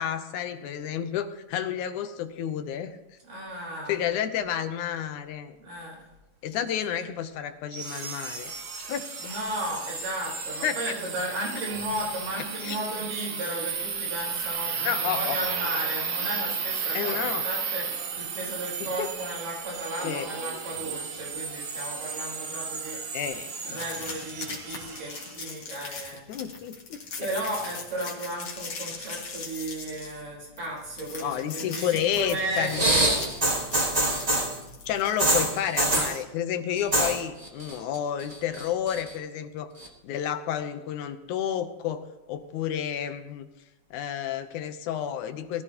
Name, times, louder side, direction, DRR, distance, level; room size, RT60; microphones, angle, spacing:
voice 1, 0.0-3.0 3.9-5.6 6.4-8.5 8.8-9.3 10.6-10.8 12.6-12.8 14.8-15.4 16.9-17.4 18.8-19.1 20.0-20.3 23.1-23.8 26.3-27.0 31.2-32.8 34.9-39.7 40.0-43.5 43.9-45.6, left 9 dB, 75° left, 9 dB, 2.2 m, -30 dB
voice 2, 3.3-4.0 5.6-6.1 6.5-6.7 6.9-7.1 9.2-23.2 23.7-26.2 27.2-34.8, right 1 dB, 90° right, -3 dB, 6.0 m, -35 dB
sound 1, 7.7-25.4, right 5 dB, 50° right, 1.9 m, -34 dB
sound 2, 23.7-35.5, left 4 dB, 50° left, 2.9 m, -40 dB
sound 3, 32.6-34.6 35.2-36.2 36.8-37.2 37.4-38.0 38.3-39.1 39.8-39.9, right 1 dB, 25° right, 0.8 m, -24 dB
21.0 x 14.5 x 2.9 m, 1.0 s
omnidirectional pair, 3.6 m